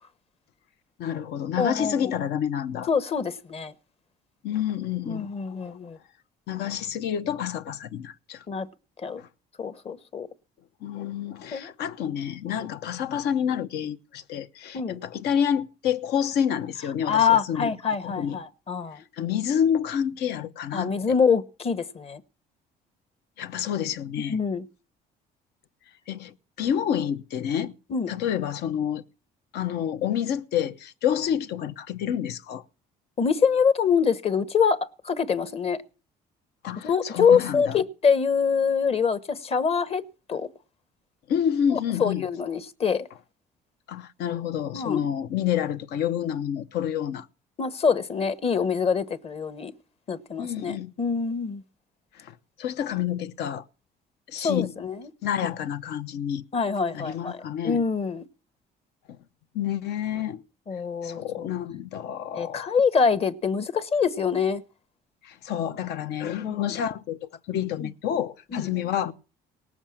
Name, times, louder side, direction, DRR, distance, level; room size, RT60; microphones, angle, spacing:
voice 1, 1.0-2.9 4.4-5.3 5.6-5.8 6.5-8.4 9.2-9.3 10.8-17.7 18.0-18.4 19.2-21.2 23.4-24.4 26.1-27.7 28.1-29.0 29.5-32.6 36.6-37.8 41.3-42.2 43.9-47.3 50.4-50.9 52.1-53.6 54.3-54.7 55.2-56.4 56.9-57.8 59.5-60.4 61.0-62.7 65.2-69.1, left 9 dB, 75° left, 0.9 m, -28 dB
voice 2, 1.6-2.1 2.9-3.7 5.0-6.0 8.5-8.7 9.0-9.2 9.6-10.3 11.5-11.7 12.6-12.7 14.7-15.0 17.1-19.0 20.7-22.2 24.3-24.6 27.9-28.1 33.2-34.8 35.0-35.8 36.8-40.0 40.3-40.5 41.7-43.1 44.7-45.0 47.6-49.7 50.1-51.6 54.4-55.1 56.5-58.2 60.7-61.5 62.3-64.6 66.4-66.6 67.8-67.9 68.5-68.7, left 6 dB, 35° left, 1.1 m, -25 dB
18.5 x 7.2 x 7.2 m
cardioid pair, 110°, 17 cm